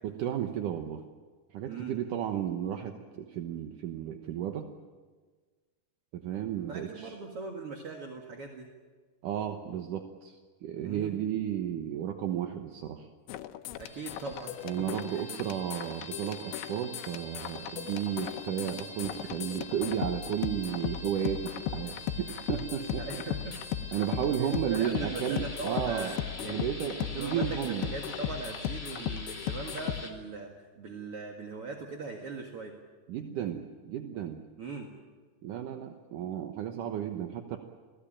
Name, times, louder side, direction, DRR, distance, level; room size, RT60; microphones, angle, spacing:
voice 1, 0.0-1.0 1.5-4.7 6.1-7.1 9.2-10.4 10.6-13.1 14.6-23.2 23.9-26.2 26.5-27.9 33.1-34.4 35.4-37.6, right 10 dB, 65° right, 5 dB, 2.2 m, -33 dB
voice 2, 6.7-8.7 10.8-11.1 13.8-15.2 23.0-23.6 24.4-26.7 27.2-32.7 34.6-34.9, right 4 dB, 45° right, 2 dB, 2.1 m, -40 dB
sound 1, 13.3-30.0, left 12 dB, 75° left, 2.8 m, -37 dB
sound 2, 13.7-30.1, left 2 dB, 15° left, 2.3 m, -45 dB
28.5 x 19.0 x 8.8 m, 1.4 s
omnidirectional pair, 4.9 m